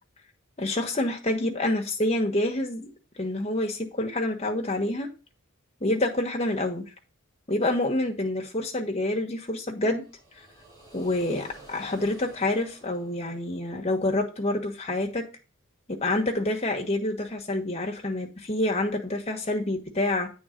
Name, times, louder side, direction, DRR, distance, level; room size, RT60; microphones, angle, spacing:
voice 1, 0.6-2.9 3.2-5.1 5.8-6.8 7.5-10.0 10.9-15.2 15.9-20.3, left 1 dB, 30° left, 1.3 m, -27 dB
sound 1, 10.0-13.9, right 1 dB, 15° right, 4.1 m, -51 dB
8.8 x 3.7 x 5.1 m
head